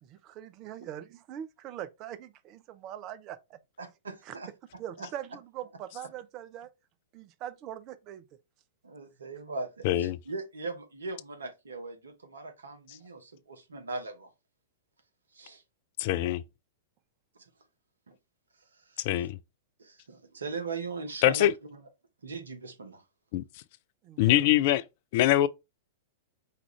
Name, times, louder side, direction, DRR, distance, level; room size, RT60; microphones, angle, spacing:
voice 1, 0.0-3.6 4.3-4.4 4.8-6.7 7.1-8.2 24.0-24.3, right 11 dB, 40° right, 0.5 m, -42 dB
voice 2, 3.8-4.5 5.0-5.1 8.8-14.3 15.3-15.6 17.4-17.5 18.1-18.2 18.7-19.3 19.8-21.9 22.2-23.0, right 3 dB, 75° right, 0.9 m, -40 dB
voice 3, 9.8-10.2 16.0-16.4 19.1-19.4 21.2-21.5 23.3-23.4 24.2-24.8 25.1-25.5, left 14 dB, 50° left, 0.3 m, -23 dB
4.8 x 2.4 x 3.1 m
figure-of-eight pair, 105°, 0 cm